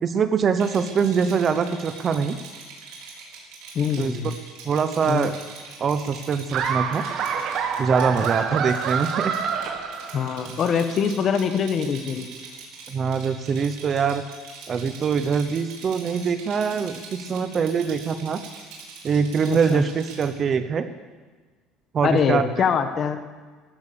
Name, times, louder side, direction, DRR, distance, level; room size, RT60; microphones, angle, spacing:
voice 1, 0.0-2.4 4.0-4.1 4.6-5.3 5.8-7.1 7.8-9.3 12.9-14.2 14.7-18.4 19.0-20.9 21.9-22.7, right 6 dB, 25° right, 11 dB, 0.7 m, -23 dB
Rattle, 0.6-20.3, right 5 dB, 75° right, 4.4 m, -42 dB
voice 2, 3.7-4.3 5.0-5.3 10.1-12.3 19.5-19.8 22.0-23.2, left 7 dB, 35° left, 9 dB, 1.1 m, -23 dB
Laughter, 6.5-10.5, right 7 dB, 45° right, 1.4 m, -27 dB
14.5 x 13.5 x 6.8 m, 1.4 s
cardioid pair, 170°, 0 cm